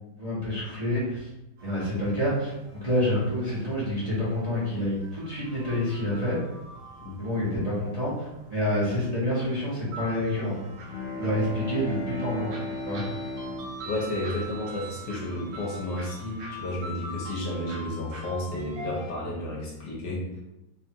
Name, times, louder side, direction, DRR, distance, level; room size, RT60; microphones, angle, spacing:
voice 1, 0.2-1.3 1.6-6.4 7.2-10.6 11.2-12.5 12.8-13.0, left 1 dB, 25° right, -8 dB, 0.9 m, -28 dB
sound 1, 1.6-19.1, right 1 dB, 70° right, 1.2 m, -43 dB
Bowed string instrument, 10.9-15.4, left 2 dB, 80° left, 0.6 m, -36 dB
voice 2, 13.9-20.3, left 1 dB, 65° left, -3 dB, 1.4 m, -32 dB
3.5 x 2.4 x 4.3 m, 0.94 s
omnidirectional pair, 2.1 m